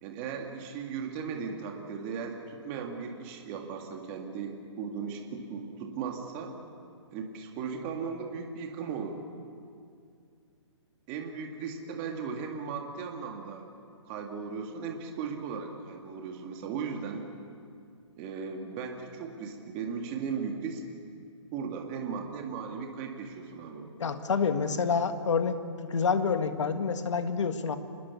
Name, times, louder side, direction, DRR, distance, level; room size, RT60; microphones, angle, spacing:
voice 1, 0.0-6.5 7.1-9.2 11.1-13.6 14.0-17.3 18.2-20.8 21.5-23.9, right 6 dB, 20° right, 2 dB, 1.9 m, -37 dB
voice 2, 24.0-25.6 25.9-27.8, left 5 dB, 70° left, 8 dB, 1.9 m, -27 dB
27.0 x 20.5 x 7.1 m, 2.3 s
hypercardioid pair, 165°, 16 cm